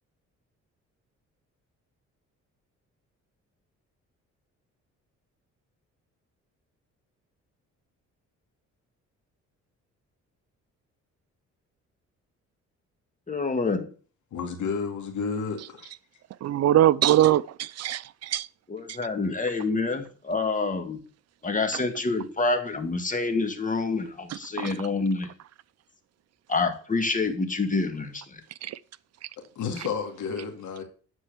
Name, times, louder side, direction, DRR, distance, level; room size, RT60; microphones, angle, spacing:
voice 1, 13.3-13.9 18.7-21.0 21.4-25.3 26.5-28.4, left 3 dB, 25° left, 1.9 m, -27 dB
voice 2, 14.3-15.9 29.6-30.8, left 5 dB, 75° left, 2.4 m, -31 dB
voice 3, 16.4-18.5 24.6-24.7 28.6-28.8, right 12 dB, 60° right, 0.5 m, -22 dB
9.7 x 4.5 x 6.6 m
cardioid pair, 90°, 30 cm